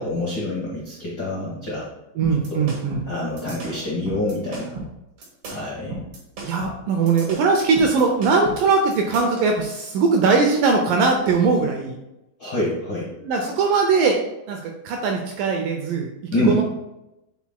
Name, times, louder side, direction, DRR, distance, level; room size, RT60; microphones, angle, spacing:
voice 1, 0.0-1.9 2.5-2.6 3.1-4.7 5.5-5.9 12.4-13.1 16.3-16.6, left 1 dB, 75° left, -6 dB, 1.0 m, -26 dB
sound 1, 2.2-9.5, right 2 dB, 55° right, 1.7 m, -35 dB
voice 2, 2.2-3.0 6.4-12.0 13.2-14.2 14.5-16.6, right 4 dB, 80° right, 3 dB, 2.0 m, -20 dB
8.2 x 5.8 x 2.2 m, 0.91 s
omnidirectional pair, 4.4 m